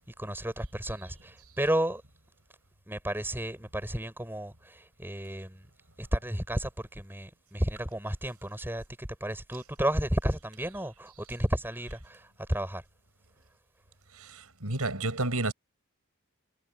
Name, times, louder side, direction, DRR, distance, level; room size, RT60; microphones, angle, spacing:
voice 1, 0.2-2.0 2.9-5.7 6.0-12.8, right 1 dB, 10° right, 6.6 m, -32 dB
voice 2, 14.1-15.5, right 2 dB, 90° right, 5.7 m, -31 dB
head